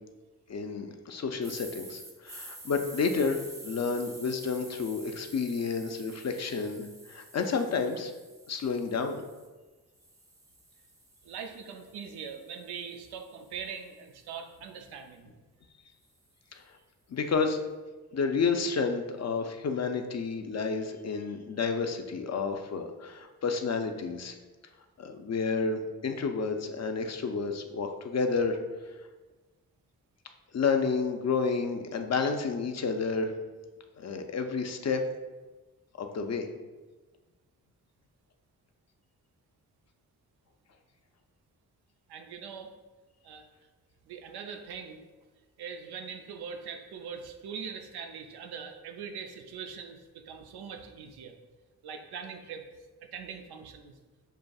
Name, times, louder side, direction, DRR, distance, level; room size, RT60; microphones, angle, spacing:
voice 1, 0.5-8.1 8.5-9.2 16.5-16.6 17.1-17.6 18.1-24.3 25.0-28.6 30.5-33.3 34.0-35.0 36.0-36.5, left 5 dB, 45° left, 6 dB, 0.5 m, -30 dB
sound 1, 1.4-9.5 10.0-14.2, right 1 dB, 10° right, 0.6 m, -49 dB
voice 2, 11.2-15.3 42.1-42.7 43.2-43.5 44.1-45.1 45.6-51.4 51.8-52.7 53.0-54.0, right 6 dB, 90° right, 5 dB, 0.5 m, -42 dB
6.6 x 2.5 x 2.3 m, 1.2 s
cardioid pair, 50°, 38 cm